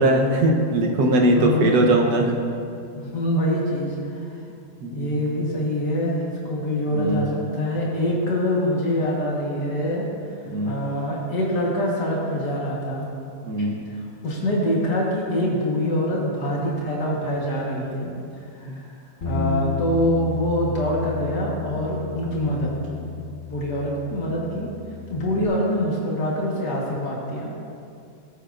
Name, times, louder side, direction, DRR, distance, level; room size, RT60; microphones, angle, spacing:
voice 1, 0.0-2.3 4.8-5.1 6.9-7.3 10.4-10.7 13.4-13.7 18.7-18.8, right 1 dB, 75° right, 1 dB, 1.6 m, -20 dB
voice 2, 1.3-2.0 2.9-4.3 4.9-10.0 10.6-13.1 13.6-18.1 18.5-18.9 19.2-23.0 23.5-24.7 25.1-27.5, equal, 90° left, -4 dB, 2.2 m, -25 dB
Bass guitar, 19.2-25.5, left 7 dB, 45° left, 1.9 m, -33 dB
18.0 x 8.6 x 2.6 m, 2.5 s
omnidirectional pair, 1.7 m